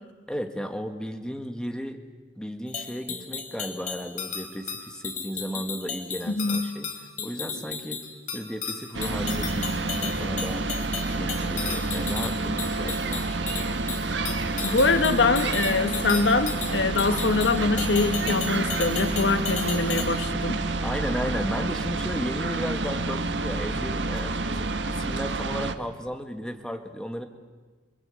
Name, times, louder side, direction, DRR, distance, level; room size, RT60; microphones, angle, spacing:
voice 1, 0.3-2.0 2.4-6.9 7.2-8.0 8.3-10.7 11.1-13.8 20.8-27.2, equal, 5° left, 5 dB, 1.9 m, -34 dB
sound 1, 2.7-20.0, left 6 dB, 45° left, 3.5 m, -35 dB
voice 2, 6.3-6.6 14.6-20.6, left 3 dB, 90° left, 10 dB, 1.3 m, -24 dB
sound 2, 8.9-25.7, right 3 dB, 85° right, 1.5 m, -29 dB
28.0 x 22.5 x 8.6 m, 1.4 s
head